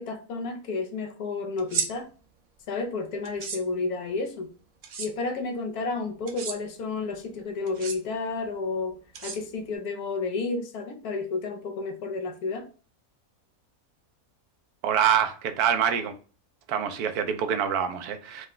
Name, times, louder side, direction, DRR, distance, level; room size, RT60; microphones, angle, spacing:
voice 1, 0.0-2.1 2.7-4.5 5.0-9.0 9.2-12.7, left 3 dB, 85° left, 1.3 m, -31 dB
sound 1, 1.6-1.9 3.2-3.6 4.8-5.1 6.3-6.6 7.7-8.0 9.1-9.7, right 5 dB, 60° right, 0.5 m, -32 dB
voice 2, 14.8-16.1 16.7-18.5, right 8 dB, 85° right, 1.2 m, -25 dB
4.6 x 2.1 x 3.7 m
omnidirectional pair, 1.6 m